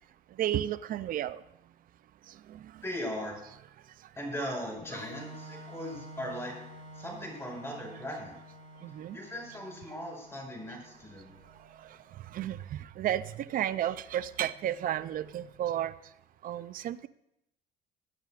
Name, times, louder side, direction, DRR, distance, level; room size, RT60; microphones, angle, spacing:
voice 1, 0.4-1.4 2.5-2.6 8.8-9.2 12.3-15.9 16.4-17.1, right 11 dB, 55° right, 16 dB, 0.5 m, -32 dB
voice 2, 2.8-3.4 4.1-6.6 6.9-8.4 9.1-11.3, equal, 15° left, 0 dB, 5.3 m, -38 dB
Organ, 4.8-12.3, equal, 60° left, 3.9 m, -50 dB
21.0 x 10.5 x 2.5 m, 0.82 s
cardioid pair, 110°, 17 cm